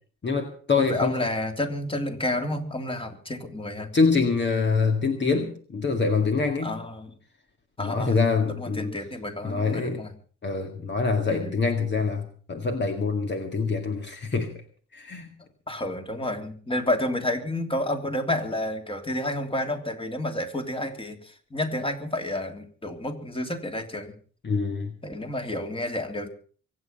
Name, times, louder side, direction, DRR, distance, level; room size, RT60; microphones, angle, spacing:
voice 1, 0.2-1.2 3.9-6.8 7.8-8.9 9.4-10.0 10.4-14.5 14.9-15.3 24.4-24.9, left 4 dB, 35° left, 5 dB, 2.1 m, -25 dB
voice 2, 0.8-3.9 6.6-7.1 7.8-8.2 8.6-10.1 11.3-11.6 15.7-24.1 25.0-26.3, left 1 dB, 20° left, 5 dB, 3.2 m, -30 dB
24.0 x 9.3 x 5.6 m, 0.43 s
cardioid pair, 90°, 30 cm